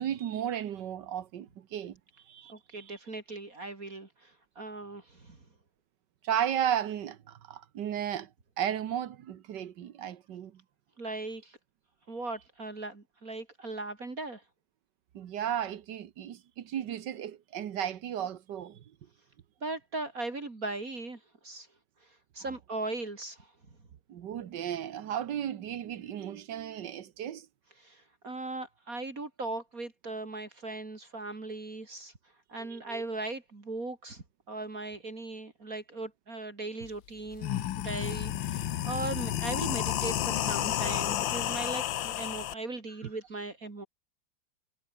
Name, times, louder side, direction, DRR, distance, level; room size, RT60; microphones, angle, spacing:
voice 1, 0.0-2.0 2.3-2.9 6.2-8.3 8.6-10.6 15.1-18.8 24.1-27.5 32.6-33.0, right 10 dB, 70° right, 1.7 m, -34 dB
voice 2, 2.5-5.4 11.0-11.6 12.1-14.4 19.6-21.7 22.3-23.5 27.8-32.1 32.5-43.9, right 2 dB, 45° right, 3.8 m, -38 dB
sound 1, 36.8-36.9 37.3-42.5, left 12 dB, 85° left, 1.7 m, -31 dB
omnidirectional pair, 2.0 m